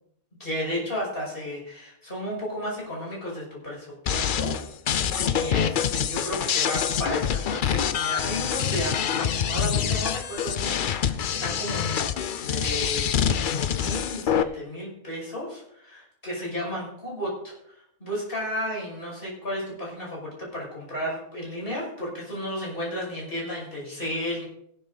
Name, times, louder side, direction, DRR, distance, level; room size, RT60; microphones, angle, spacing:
voice 1, 0.4-4.5 5.0-12.0 12.4-17.7 18.0-24.4, equal, 40° left, -4 dB, 6.2 m, -33 dB
sound 1, 4.1-14.4, left 8 dB, 55° left, 0.5 m, -26 dB
15.5 x 12.0 x 4.0 m, 0.74 s
omnidirectional pair, 1.5 m